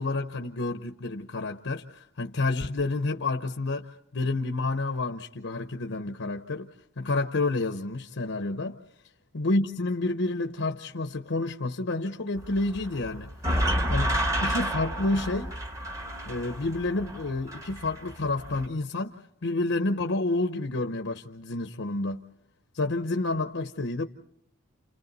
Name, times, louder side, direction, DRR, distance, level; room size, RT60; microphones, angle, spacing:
voice 1, 0.0-6.7 7.0-8.8 9.3-13.3 13.9-14.1 14.4-15.5 16.2-22.2 22.7-24.1, left 2 dB, 65° left, 0.8 m, -29 dB
sound 1, 12.4-18.7, equal, 15° right, 1.0 m, -30 dB
29.5 x 29.0 x 4.1 m
head